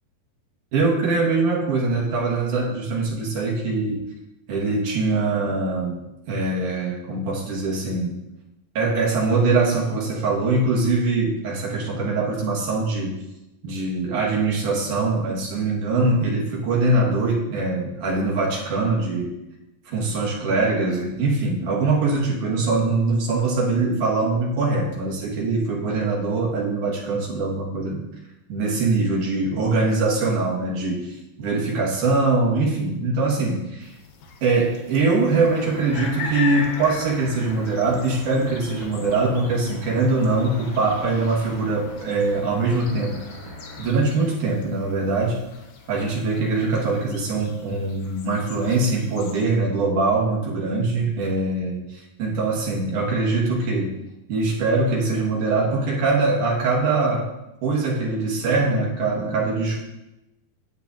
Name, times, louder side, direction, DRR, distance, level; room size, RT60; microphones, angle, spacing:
voice 1, 0.7-4.0 4.5-6.0 6.3-8.2 8.8-13.2 13.6-19.4 19.9-28.0 28.5-33.9 34.4-43.2 43.8-45.4 45.9-51.8 52.2-53.9 54.3-57.3 57.6-59.8, right 3 dB, 65° right, -4 dB, 2.7 m, -22 dB
sound 1, 33.8-49.4, left 5 dB, 75° left, 1.8 m, -40 dB
sound 2, 35.3-43.8, left 1 dB, 40° left, 2.4 m, -40 dB
9.4 x 7.8 x 2.5 m, 0.93 s
omnidirectional pair, 4.2 m